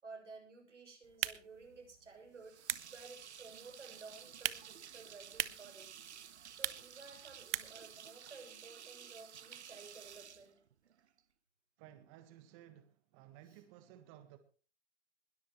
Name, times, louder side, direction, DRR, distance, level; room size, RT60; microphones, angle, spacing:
voice 1, 0.0-5.9 6.5-10.6 13.4-13.6, right 4 dB, 85° right, 7.4 m, -54 dB
sound 1, 1.0-7.9, right 11 dB, 55° right, 1.2 m, -43 dB
sound 2, 2.4-11.2, right 9 dB, 70° right, 1.4 m, -53 dB
voice 2, 11.8-14.4, right 12 dB, 30° right, 1.5 m, -57 dB
21.0 x 13.5 x 3.2 m
hypercardioid pair, 140°, 35 cm